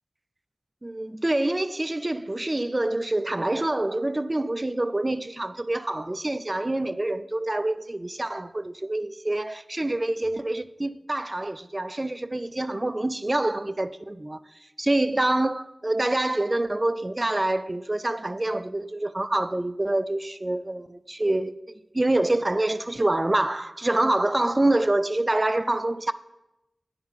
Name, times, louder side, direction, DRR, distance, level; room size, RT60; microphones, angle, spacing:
voice 1, 0.8-14.4 14.8-26.1, right 1 dB, 25° right, 0.4 m, -26 dB
9.6 x 5.8 x 5.6 m
wide cardioid pair, 80°, 0 cm